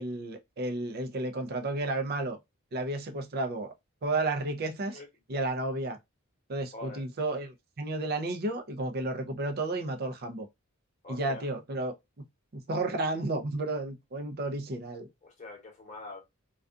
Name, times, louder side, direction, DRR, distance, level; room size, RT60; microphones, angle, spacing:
voice 1, 0.0-2.4 2.7-3.7 4.0-5.0 5.3-6.0 6.5-10.5 11.1-12.2 12.5-15.1, right 2 dB, 50° right, 0.5 m, -32 dB
voice 2, 6.7-7.0 11.0-11.5 15.2-16.2, left 2 dB, 35° left, 0.9 m, -44 dB
2.3 x 2.3 x 2.4 m
head